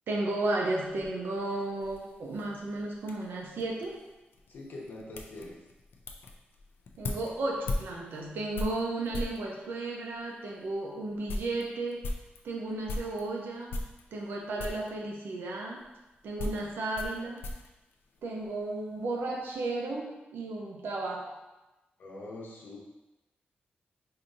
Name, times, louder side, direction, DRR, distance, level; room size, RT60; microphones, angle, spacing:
voice 1, 0.1-4.0 7.0-12.1 12.4-13.8 14.1-15.8 16.2-17.5 18.2-21.4, right 2 dB, 80° right, -1 dB, 0.7 m, -34 dB
sound 1, 0.8-9.5 10.2-10.3 10.7-10.8 11.1-13.3 13.7-14.3 14.6-14.9 15.8-18.7 19.0-19.5, left 2 dB, 90° left, 0.4 m, -39 dB
voice 2, 4.5-5.6 22.0-22.8, left 2 dB, 70° left, -4 dB, 1.0 m, -43 dB
4.8 x 2.8 x 2.7 m, 1.0 s
wide cardioid pair, 155°, 4 cm